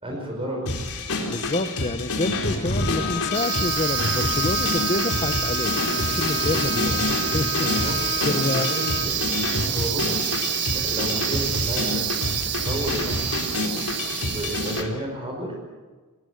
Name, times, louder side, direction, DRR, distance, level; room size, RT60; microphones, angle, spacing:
voice 1, 0.0-0.7 6.1-6.2 7.6-9.2 9.5-10.2 10.7-12.2 12.6-13.3 13.8-13.9 14.2-15.6, right 1 dB, 25° right, 0 dB, 5.2 m, -32 dB
sound 1, 0.7-14.9, left 2 dB, 85° left, 4.1 m, -28 dB
voice 2, 1.3-8.7 10.1-10.2, left 2 dB, 30° left, 12 dB, 1.0 m, -28 dB
Bowed string instrument, 2.7-9.3, left 9 dB, 55° left, 1.5 m, -31 dB
sound 2, 3.3-14.8, right 11 dB, 55° right, 1.5 m, -28 dB
22.0 x 20.5 x 8.0 m, 1.3 s
head